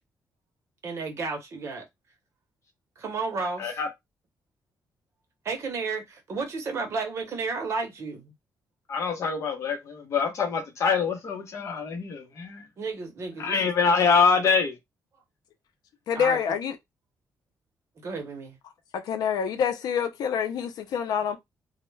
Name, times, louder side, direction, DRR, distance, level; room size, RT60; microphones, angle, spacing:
voice 1, 0.8-1.8 3.0-3.8 5.4-8.3 12.8-13.7 16.1-16.4 18.0-18.6, right 4 dB, 45° right, 0.7 m, -32 dB
voice 2, 8.9-12.7 13.4-14.8, left 5 dB, 50° left, 0.8 m, -25 dB
voice 3, 16.1-16.7 18.9-21.4, left 7 dB, 85° left, 0.4 m, -27 dB
2.2 x 2.0 x 3.1 m
wide cardioid pair, 170°, 7 cm